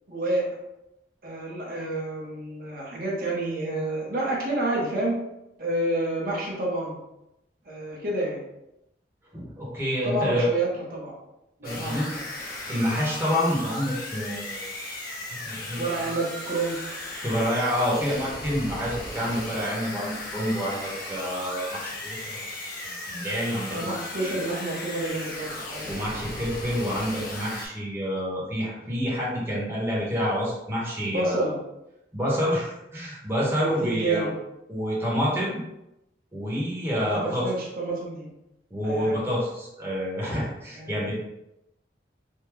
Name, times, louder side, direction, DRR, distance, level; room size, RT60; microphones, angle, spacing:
voice 1, 0.1-0.4 1.2-5.2 5.6-7.0 7.6-8.4 10.0-11.1 11.6-12.2 15.8-16.8 23.7-25.9 31.1-31.6 33.5-34.3 36.9-38.3 38.8-39.2 40.8-41.0, right 2 dB, 55° right, -4 dB, 0.8 m, -29 dB
voice 2, 9.3-10.5 11.6-12.1 12.7-14.7 15.4-15.8 17.2-22.5 22.8-24.4 25.8-31.5 32.1-34.3 34.7-35.6 36.3-37.4 38.7-41.2, equal, 15° right, -6 dB, 0.9 m, -28 dB
sound 1, 11.6-27.7, left 1 dB, 55° left, 0.8 m, -36 dB
3.4 x 2.1 x 3.1 m, 0.87 s
head